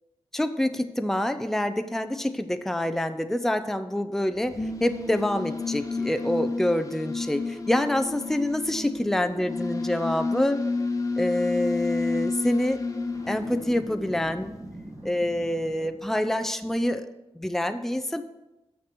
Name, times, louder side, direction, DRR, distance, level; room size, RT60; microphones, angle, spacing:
voice 1, 0.3-10.7 11.2-12.8 13.3-14.5 15.0-17.1 17.4-18.2, left 1 dB, 5° left, 9 dB, 0.5 m, -26 dB
sound 1, 4.4-14.8, left 3 dB, 30° left, 1.0 m, -31 dB
Boom, 13.1-16.3, right 1 dB, 30° right, 2.4 m, -43 dB
6.6 x 6.4 x 6.1 m, 0.99 s
cardioid pair, 60°, 11 cm